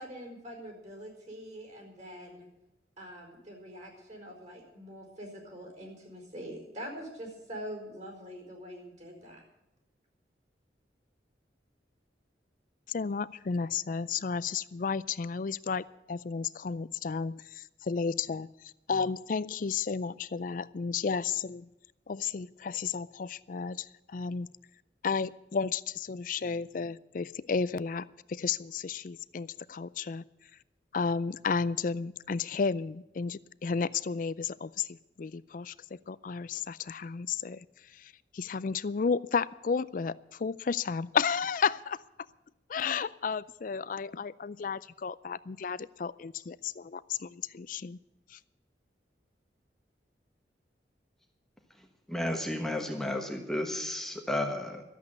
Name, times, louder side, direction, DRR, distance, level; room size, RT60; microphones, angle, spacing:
voice 1, 0.0-2.5 3.0-9.4, equal, 40° right, 1 dB, 4.4 m, -44 dB
voice 2, 12.9-18.5 18.9-21.7 22.1-24.5 25.0-30.2 30.9-37.6 37.9-42.0 42.7-48.0 48.3-48.4, left 5 dB, 50° left, 17 dB, 0.4 m, -33 dB
voice 3, 52.1-54.8, left 1 dB, ahead, 3 dB, 1.2 m, -32 dB
12.5 x 8.3 x 9.7 m, 0.93 s
head